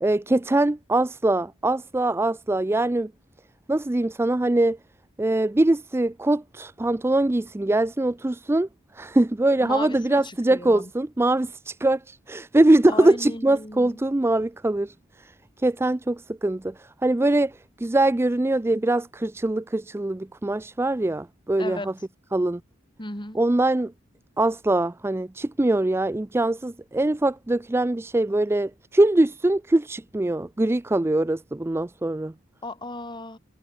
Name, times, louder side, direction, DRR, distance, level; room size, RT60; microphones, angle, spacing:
voice 1, 0.0-3.1 3.7-4.8 5.2-8.7 8.9-14.9 15.2-15.3 15.6-17.5 17.8-21.9 22.3-22.6 23.3-23.9 24.4-32.3, right 2 dB, 10° right, 0.4 m, -22 dB
voice 2, 9.6-10.9 12.9-14.0 21.6-21.9 23.0-23.4 32.6-33.4, left 2 dB, 25° left, 7.6 m, -35 dB
head